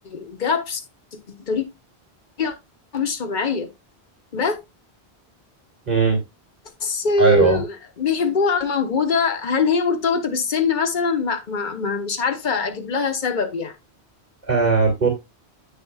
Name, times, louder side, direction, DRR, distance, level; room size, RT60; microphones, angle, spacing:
voice 1, 0.0-0.8 1.3-1.6 2.4-2.5 2.9-3.7 4.3-4.6 6.8-7.7 8.0-13.7, left 5 dB, 50° left, 1.2 m, -22 dB
voice 2, 5.8-6.2 7.2-7.6 14.5-15.1, right 4 dB, 40° right, 2.5 m, -18 dB
8.6 x 6.7 x 2.4 m
omnidirectional pair, 1.1 m